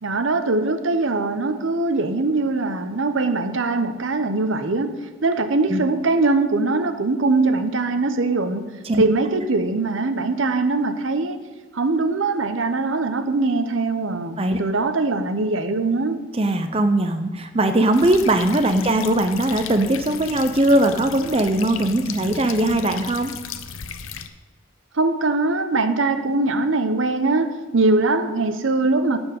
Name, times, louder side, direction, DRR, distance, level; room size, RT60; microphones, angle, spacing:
voice 1, 0.0-5.0 5.2-11.4 11.7-16.2 24.9-29.2, right 3 dB, 75° right, 10 dB, 0.8 m, -22 dB
voice 2, 16.3-23.3, right 1 dB, 30° right, 7 dB, 0.6 m, -20 dB
sound 1, 17.9-24.3, left 7 dB, 90° left, 0.7 m, -35 dB
12.0 x 4.5 x 8.2 m, 1.3 s
head